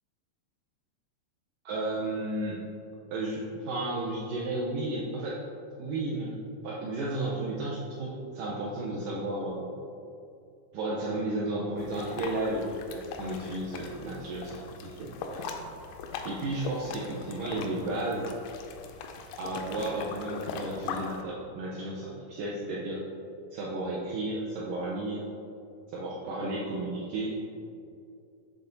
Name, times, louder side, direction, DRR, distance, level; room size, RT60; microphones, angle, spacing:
voice 1, 1.6-2.6 3.1-5.4 5.8-6.4 6.6-9.7 10.7-15.4 16.2-18.3 19.4-23.0 23.5-25.2 25.9-27.4, right 2 dB, 80° right, -5 dB, 1.9 m, -33 dB
sound 1, 11.8-21.2, left 5 dB, 85° left, 1.9 m, -40 dB
7.8 x 3.5 x 3.9 m, 2.6 s
omnidirectional pair, 4.4 m